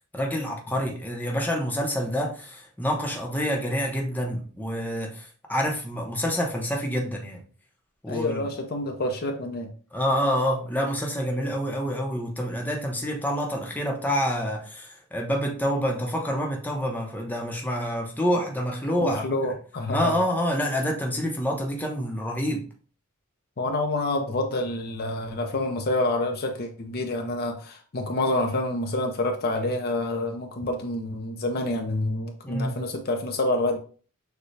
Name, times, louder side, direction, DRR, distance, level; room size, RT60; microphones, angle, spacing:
voice 1, 0.1-7.4 8.0-8.5 9.9-19.2 19.9-22.7 32.4-32.8, equal, 10° left, 0.7 m, -27 dB
voice 2, 8.1-9.7 19.0-20.1 23.6-33.8, left 2 dB, 45° left, 0.6 m, -27 dB
6.5 x 2.3 x 3.2 m
head